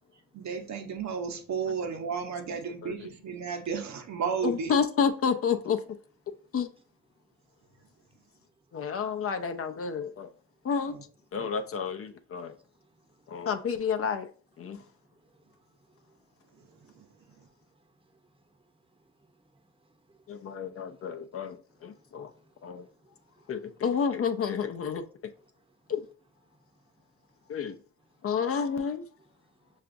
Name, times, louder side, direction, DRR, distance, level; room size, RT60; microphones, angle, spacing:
voice 1, 0.3-4.7 10.9-11.0 11.4-11.5 17.0-17.1, right 6 dB, 65° right, 0.8 m, -33 dB
voice 2, 4.4-5.8 6.5-6.7 8.7-10.3 10.6-11.0 11.3-12.6 13.3-14.3 14.6-14.8 20.3-22.3 22.6-22.9 23.5-25.0 25.9-26.0 27.5-27.8 28.2-29.1, left 6 dB, 50° left, 0.5 m, -30 dB
voice 3, 19.8-20.2 20.9-21.2 22.3-23.4, right 2 dB, 15° right, 0.7 m, -65 dB
5.6 x 2.4 x 2.5 m
cardioid pair, 85°, 31 cm